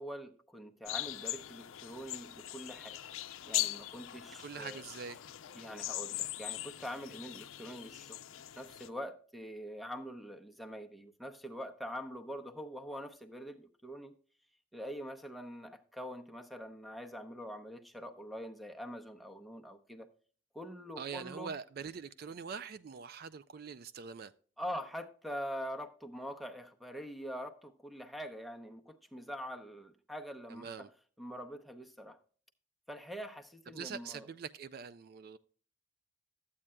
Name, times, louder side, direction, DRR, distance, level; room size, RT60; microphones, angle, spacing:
voice 1, 0.0-3.0 3.5-4.8 5.5-8.2 8.6-14.1 14.7-20.1 20.5-21.5 24.6-30.7 31.2-32.2 32.9-34.3, equal, ahead, 0.6 m, -44 dB
sound 1, 0.9-8.9, left 14 dB, 85° left, 0.5 m, -40 dB
voice 2, 4.3-5.2 21.0-24.3 30.5-30.9 33.7-35.4, right 6 dB, 50° right, 0.3 m, -44 dB
13.5 x 8.6 x 2.2 m
head